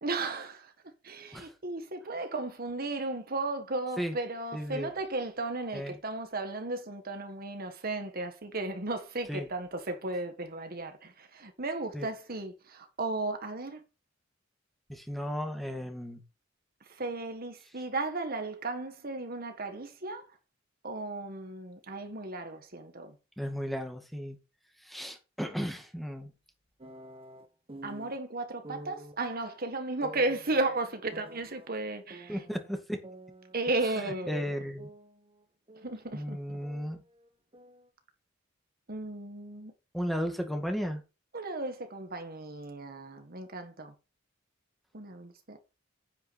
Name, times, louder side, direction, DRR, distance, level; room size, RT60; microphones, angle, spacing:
voice 1, 0.0-13.8 16.9-20.3 20.8-23.2 27.8-32.4 33.5-34.4 35.8-36.6 38.9-39.7 41.3-43.9 44.9-45.6, right 2 dB, 50° right, 1.7 m, -35 dB
voice 2, 4.5-4.9 5.7-6.0 9.3-9.5 11.9-12.1 14.9-16.2 23.4-24.4 24.8-26.3 32.3-33.0 34.3-34.9 36.1-37.0 39.9-41.0, equal, ahead, 2.1 m, -35 dB
sound 1, 26.8-28.2 28.6-29.2 30.0-31.7 32.1-33.7 33.9-36.1 36.3-37.9, right 1 dB, 30° right, 1.6 m, -49 dB
10.0 x 9.4 x 4.3 m
head